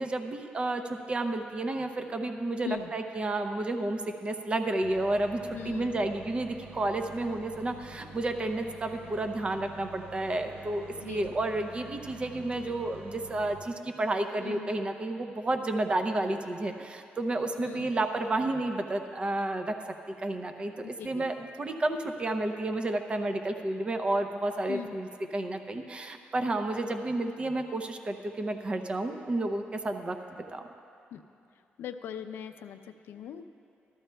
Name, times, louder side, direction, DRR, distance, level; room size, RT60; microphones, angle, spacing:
voice 1, 0.0-19.8 20.1-30.7, right 2 dB, 30° right, 6 dB, 0.6 m, -31 dB
sound 1, 4.8-13.6, right 2 dB, 60° right, 0.8 m, -48 dB
voice 2, 5.5-6.0 11.0-11.4 14.4-14.7 17.6-17.9 20.8-21.3 24.7-25.0 31.1-31.2 31.8-33.4, left 9 dB, 80° left, 9 dB, 0.5 m, -40 dB
14.5 x 13.0 x 2.2 m, 2.6 s
cardioid pair, 100°, 4 cm